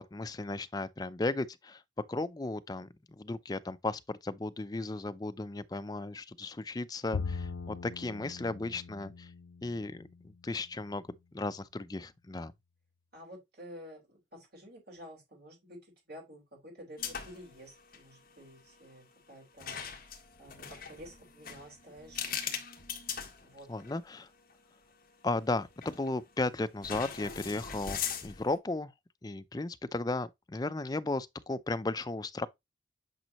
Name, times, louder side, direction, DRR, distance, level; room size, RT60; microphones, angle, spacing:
voice 1, 0.0-1.8 2.1-2.9 3.2-9.3 9.6-10.0 10.4-11.0 11.3-12.5 23.7-24.3 25.2-28.9 29.2-32.5, left 2 dB, 20° left, 0.4 m, -35 dB
Bowed string instrument, 7.1-10.5, left 5 dB, 80° left, 0.4 m, -41 dB
voice 2, 13.1-15.8 16.1-19.7 20.4-22.6 23.4-23.7, equal, 50° right, 4.6 m, -51 dB
sound 1, 17.0-17.5 17.8-18.0 19.6-24.0 24.5-24.6 25.8-26.2 26.8-28.6, left 7 dB, 45° left, 1.5 m, -40 dB
9.0 x 5.3 x 2.9 m
head